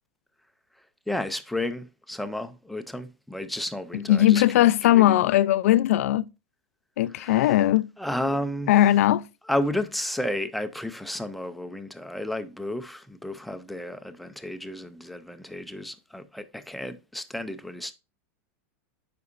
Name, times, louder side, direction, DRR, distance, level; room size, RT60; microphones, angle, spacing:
voice 1, 1.1-5.2 7.1-7.5 8.0-8.8 9.5-17.9, left 1 dB, ahead, 0.3 m, -32 dB
voice 2, 3.9-6.3 7.0-7.9 8.7-9.3, left 13 dB, 70° left, 0.4 m, -19 dB
9.5 x 5.2 x 2.5 m
supercardioid pair, 175°, 8 cm